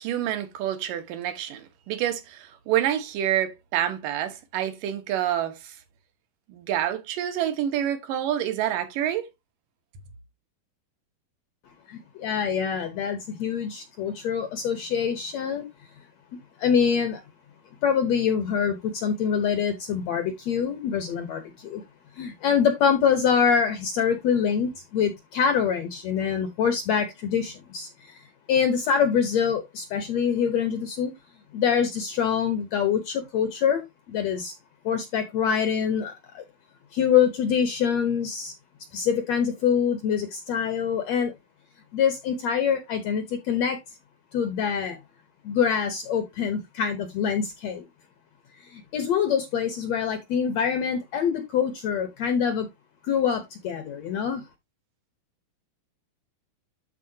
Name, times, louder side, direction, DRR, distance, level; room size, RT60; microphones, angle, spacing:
voice 1, 0.0-5.8 6.5-9.3, right 11 dB, 70° right, 2.8 m, -27 dB
voice 2, 11.9-15.6 16.3-17.2 17.8-21.8 22.2-28.2 28.5-31.1 31.5-34.5 34.8-36.4 36.9-38.5 38.9-41.3 41.9-43.8 44.3-45.0 45.4-47.9 48.6-52.7 53.0-54.4, left 7 dB, 65° left, 1.8 m, -25 dB
12.5 x 4.2 x 2.8 m
omnidirectional pair, 4.1 m